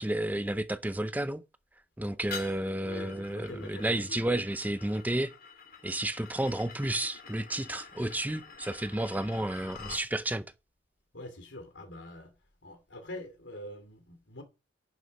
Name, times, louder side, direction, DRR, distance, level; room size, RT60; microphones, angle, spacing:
voice 1, 0.0-1.4 2.0-5.3 5.8-10.4, right 1 dB, 10° right, 0.6 m, -31 dB
sound 1, 2.3-10.1, left 4 dB, 55° left, 2.3 m, -47 dB
voice 2, 2.8-4.2 11.1-12.3 12.6-14.4, left 1 dB, 75° left, 2.8 m, -44 dB
11.0 x 6.6 x 5.4 m
head